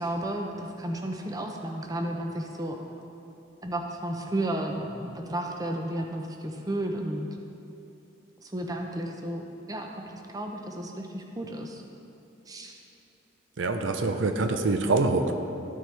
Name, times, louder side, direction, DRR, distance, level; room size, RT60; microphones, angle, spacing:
voice 1, 0.0-2.8 3.6-7.3 8.4-9.4 9.7-11.8 12.5-12.7, right 1 dB, 20° right, 2 dB, 0.6 m, -33 dB
voice 2, 13.6-15.3, right 3 dB, 80° right, 7 dB, 0.6 m, -25 dB
13.5 x 6.4 x 3.3 m, 2.9 s
head